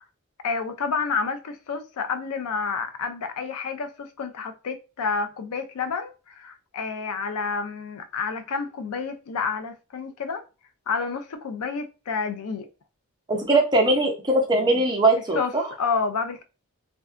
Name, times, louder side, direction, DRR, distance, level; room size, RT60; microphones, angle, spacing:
voice 1, 0.4-10.4 10.9-12.7 15.3-15.5 15.8-16.4, left 5 dB, 80° left, 0.4 m, -29 dB
voice 2, 13.3-15.7, right 2 dB, 20° right, 0.5 m, -21 dB
2.6 x 2.2 x 2.4 m
head